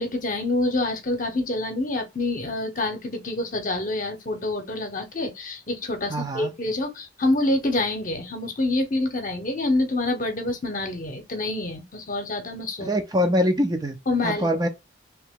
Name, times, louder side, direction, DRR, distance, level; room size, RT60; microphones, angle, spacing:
voice 1, 0.0-12.9 14.1-14.5, left 2 dB, 45° left, 0.8 m, -27 dB
voice 2, 6.1-6.5 12.8-14.0 14.2-14.7, equal, 20° right, 0.5 m, -23 dB
3.2 x 2.9 x 3.6 m
head